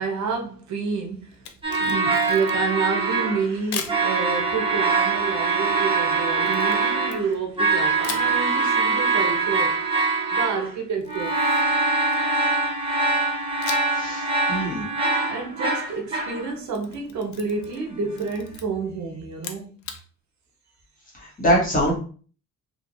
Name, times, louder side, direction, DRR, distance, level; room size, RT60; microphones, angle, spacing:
voice 1, 0.0-1.3 1.8-9.8 10.3-11.3 15.3-19.7, right 4 dB, 60° right, 0.7 m, -29 dB
Camera, 1.3-2.8 3.7-4.0 6.5-7.6 8.0-8.3 11.0-12.5 13.6-14.1 14.4-14.5 16.5-17.9 18.1-18.6 19.3-20.0, left 7 dB, 65° left, 0.5 m, -37 dB
sound 1, 1.6-3.6 3.9-10.7 11.1-16.5, right 3 dB, 15° right, 0.8 m, -23 dB
voice 2, 13.9-14.8 21.2-22.0, equal, 25° left, 1.0 m, -23 dB
3.0 x 2.2 x 2.5 m
wide cardioid pair, 155°, 32 cm